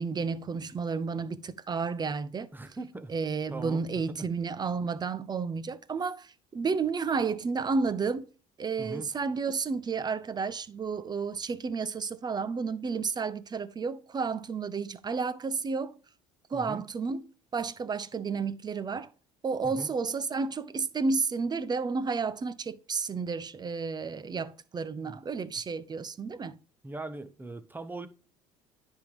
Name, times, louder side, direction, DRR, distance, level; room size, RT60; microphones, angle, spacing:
voice 1, 0.0-2.5 3.1-8.3 8.6-15.9 16.5-17.2 17.5-19.1 19.4-26.6, right 5 dB, 30° right, 0.7 m, -31 dB
voice 2, 2.5-3.1 3.5-3.8 4.2-4.3 8.8-9.1 16.5-16.8 19.6-19.9 25.1-25.2 26.8-28.1, right 2 dB, 15° right, 1.0 m, -40 dB
10.0 x 3.8 x 4.7 m
supercardioid pair, 80°, 15 cm